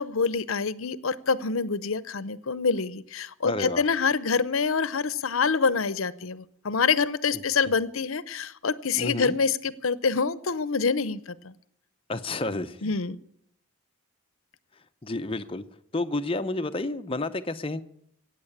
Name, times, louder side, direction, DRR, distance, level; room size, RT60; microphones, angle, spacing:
voice 1, 0.0-11.5 12.8-13.2, left 5 dB, 75° left, 17 dB, 0.7 m, -26 dB
voice 2, 3.4-3.8 7.3-7.4 9.0-9.4 12.1-12.9 15.0-15.6 15.9-17.8, left 2 dB, 25° left, 9 dB, 0.6 m, -30 dB
15.5 x 9.0 x 8.6 m, 0.70 s
head